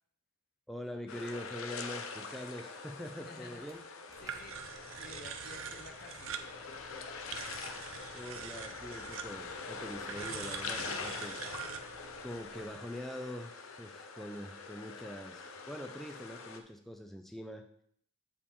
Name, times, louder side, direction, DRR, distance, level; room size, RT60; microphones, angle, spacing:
voice 1, 0.7-3.8 8.1-11.8 12.2-17.6, equal, ahead, 4 dB, 0.4 m, -44 dB
sound 1, 1.1-16.6, left 4 dB, 90° left, 0.7 m, -44 dB
voice 2, 3.2-3.7 4.2-7.4, left 3 dB, 45° left, 5 dB, 0.7 m, -53 dB
Slam / Wood, 3.5-4.8 7.3-7.9 10.3-11.5, right 2 dB, 15° right, 0.8 m, -58 dB
sound 2, 4.2-12.7, right 8 dB, 80° right, 0.5 m, -45 dB
8.4 x 4.8 x 3.6 m, 0.65 s
head